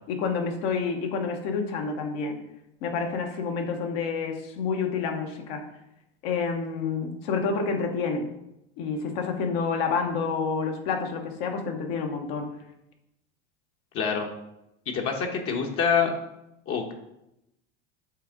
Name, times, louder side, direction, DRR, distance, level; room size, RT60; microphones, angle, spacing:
voice 1, 0.1-2.4 2.8-5.6 6.2-8.3 8.8-12.5, left 5 dB, 70° left, 3 dB, 1.3 m, -28 dB
voice 2, 13.9-14.3 14.9-16.1 16.7-16.9, left 6 dB, 45° left, 1 dB, 1.1 m, -26 dB
8.0 x 3.5 x 3.7 m, 0.85 s
hypercardioid pair, 100°, 32 cm